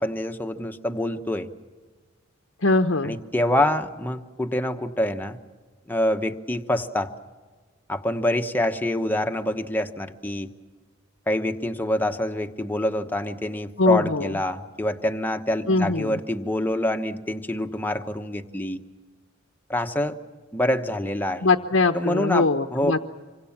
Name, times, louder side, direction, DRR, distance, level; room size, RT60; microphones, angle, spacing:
voice 1, 0.0-1.5 3.0-5.4 5.9-7.1 7.9-10.5 11.3-18.8 19.7-20.2 20.5-21.5 21.9-22.9, left 1 dB, 10° left, 6 dB, 1.1 m, -26 dB
voice 2, 2.6-3.2 13.8-14.3 15.7-16.2 21.4-23.0, left 3 dB, 85° left, 5 dB, 1.0 m, -21 dB
26.5 x 24.5 x 7.3 m, 1.3 s
head